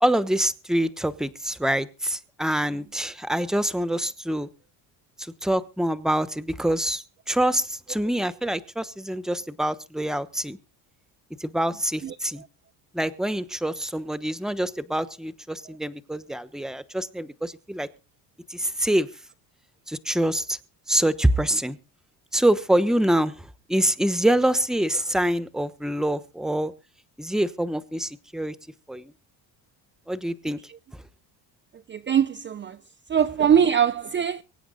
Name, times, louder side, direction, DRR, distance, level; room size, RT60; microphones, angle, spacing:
voice 1, 0.0-4.5 5.4-10.6 11.4-12.4 12.9-17.9 18.5-19.1 19.9-20.6 20.9-21.8 22.3-23.3 23.7-26.7 27.2-28.5 28.9-29.1 30.1-30.6, right 1 dB, ahead, 1.0 m, -25 dB
voice 2, 12.0-12.5 30.7-30.8 31.9-32.8 33.1-34.4, right 8 dB, 25° right, 0.6 m, -22 dB
24.0 x 9.4 x 4.0 m
cardioid pair, 125°, 42 cm